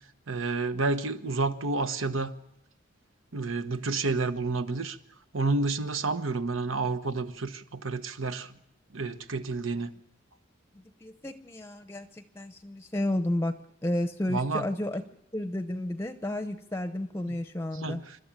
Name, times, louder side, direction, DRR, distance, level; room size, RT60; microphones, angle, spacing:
voice 1, 0.3-2.3 3.3-5.0 5.3-8.5 8.9-9.9 14.3-14.7 17.3-17.4 17.7-18.2, right 3 dB, 80° right, 10 dB, 1.1 m, -30 dB
voice 2, 11.0-13.6 13.8-15.0 15.3-18.0, left 1 dB, 15° left, 9 dB, 0.7 m, -32 dB
28.0 x 12.5 x 8.9 m, 0.85 s
head